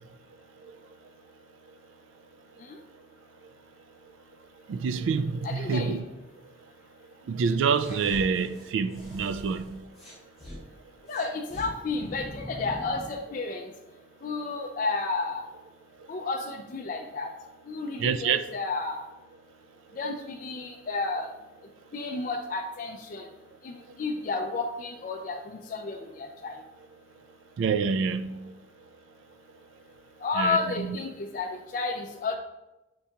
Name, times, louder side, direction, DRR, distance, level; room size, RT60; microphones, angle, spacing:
voice 1, 4.7-6.0 7.3-9.8 18.0-18.5 27.6-28.5 30.4-31.0, right 5 dB, 80° right, 0.3 m, -27 dB
voice 2, 5.4-6.0 11.1-13.7 14.2-15.4 16.1-17.3 17.7-19.1 19.9-21.3 21.9-23.3 23.6-26.6 30.2-32.3, left 3 dB, 45° left, 0.3 m, -32 dB
sound 1, 7.8-10.6 11.1-13.2, equal, ahead, 1.4 m, -43 dB
5.4 x 3.5 x 2.8 m
head